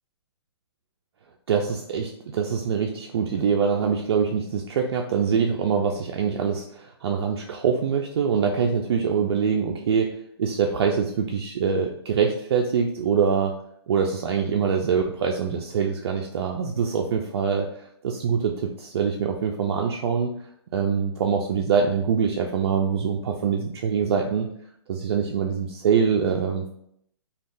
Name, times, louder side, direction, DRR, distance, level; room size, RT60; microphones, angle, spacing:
voice 1, 1.5-13.6 13.9-17.7 18.0-20.3 20.7-24.5 24.9-26.7, right 6 dB, 60° right, 1 dB, 0.4 m, -24 dB
3.4 x 2.3 x 2.6 m, 0.71 s
hypercardioid pair, 155°, 14 cm